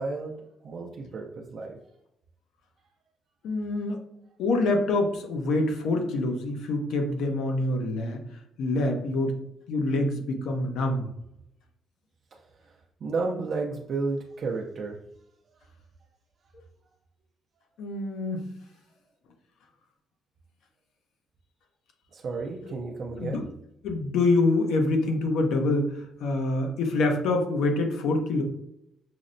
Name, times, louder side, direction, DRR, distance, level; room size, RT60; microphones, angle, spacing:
voice 1, 0.0-1.8 12.3-15.0 22.1-23.5, right 3 dB, 55° right, 1 dB, 0.5 m, -33 dB
voice 2, 3.4-4.0 4.4-8.2 8.6-9.3 9.7-11.1 17.8-18.5 23.2-23.4 23.8-28.4, left 2 dB, 85° left, 4 dB, 0.7 m, -26 dB
5.8 x 2.0 x 2.6 m, 0.79 s
cardioid pair, 110°, 0 cm